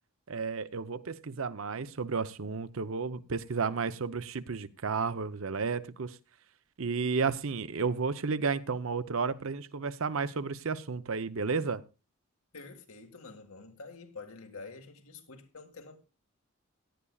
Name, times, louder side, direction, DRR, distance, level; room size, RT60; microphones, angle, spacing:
voice 1, 0.3-6.2 6.8-11.8, right 5 dB, 70° right, 0.7 m, -32 dB
voice 2, 12.5-16.0, left 4 dB, 80° left, 2.0 m, -47 dB
17.0 x 11.0 x 2.3 m
head